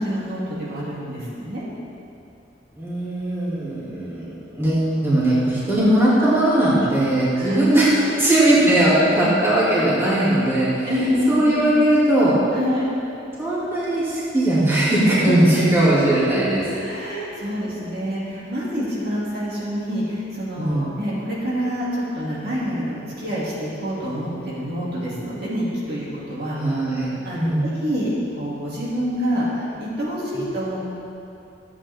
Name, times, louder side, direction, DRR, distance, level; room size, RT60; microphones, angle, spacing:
voice 1, 0.0-1.6 7.3-7.6 8.0-8.1 10.9-11.6 12.5-12.9 16.7-26.6 27.2-30.8, equal, 60° right, -8 dB, 2.7 m, -27 dB
voice 2, 2.7-12.4 13.4-16.6 20.6-20.9 26.6-27.1 27.4-27.6 30.3-30.4, right 1 dB, 15° right, -10 dB, 2.6 m, -19 dB
14.5 x 8.3 x 3.6 m, 2.8 s
head